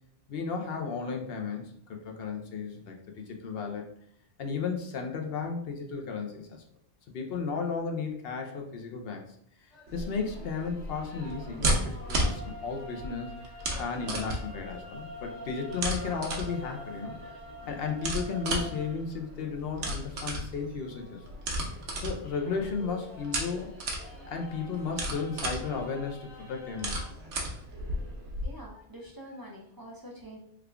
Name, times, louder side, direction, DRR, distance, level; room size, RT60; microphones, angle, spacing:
voice 1, 0.3-3.9 4.4-6.6 7.1-9.2 9.9-13.4 13.8-17.1 17.7-21.2 22.0-23.8 24.3-27.0, left 5 dB, 60° left, 2 dB, 0.8 m, -34 dB
sound 1, 9.7-27.1, equal, 90° left, 1.6 m, -47 dB
sound 2, 9.9-28.5, right 1 dB, 80° right, 1.1 m, -35 dB
voice 2, 28.4-30.4, equal, 35° right, -2 dB, 0.3 m, -45 dB
3.6 x 2.3 x 3.4 m, 0.71 s
omnidirectional pair, 1.2 m